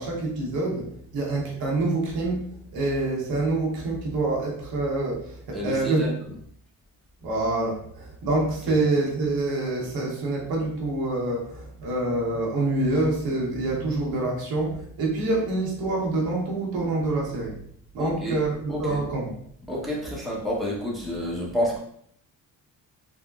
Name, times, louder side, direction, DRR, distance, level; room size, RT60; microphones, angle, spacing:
voice 1, 0.0-6.0 7.2-17.6 17.9-19.3, right 2 dB, 75° right, -2 dB, 1.0 m, -26 dB
voice 2, 5.5-6.1 18.0-18.4 18.7-19.0 19.7-21.8, equal, ahead, -5 dB, 0.9 m, -29 dB
3.6 x 2.1 x 2.3 m, 0.64 s
cardioid pair, 90°, 37 cm